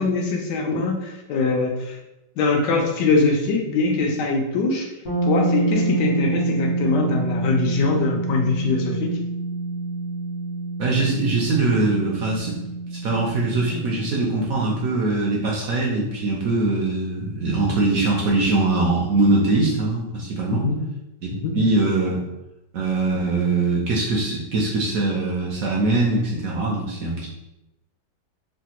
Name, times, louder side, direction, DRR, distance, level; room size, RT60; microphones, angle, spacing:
voice 1, 0.0-2.0 2.4-4.9 5.2-9.1 20.5-20.8 21.4-21.6, left 3 dB, 80° left, 1 dB, 1.2 m, -22 dB
sound 1, 5.1-14.8, right 2 dB, 55° left, 1.0 m, -27 dB
voice 2, 10.8-12.6 12.9-20.7 21.2-21.3 21.5-22.2 22.7-27.3, right 2 dB, 70° right, -3 dB, 0.8 m, -22 dB
3.3 x 2.2 x 2.8 m, 0.94 s
omnidirectional pair, 1.8 m